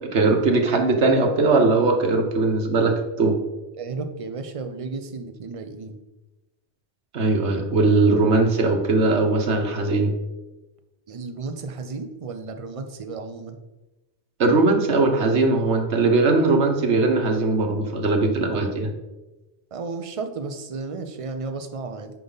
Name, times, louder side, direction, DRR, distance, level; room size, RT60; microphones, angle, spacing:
voice 1, 0.0-3.4 7.1-10.1 14.4-18.9, right 3 dB, 85° right, 4 dB, 1.4 m, -20 dB
voice 2, 3.8-6.0 11.1-13.6 18.5-18.6 19.7-22.1, right 4 dB, 35° right, 7 dB, 0.7 m, -33 dB
9.3 x 5.3 x 4.0 m, 1.1 s
omnidirectional pair, 1.1 m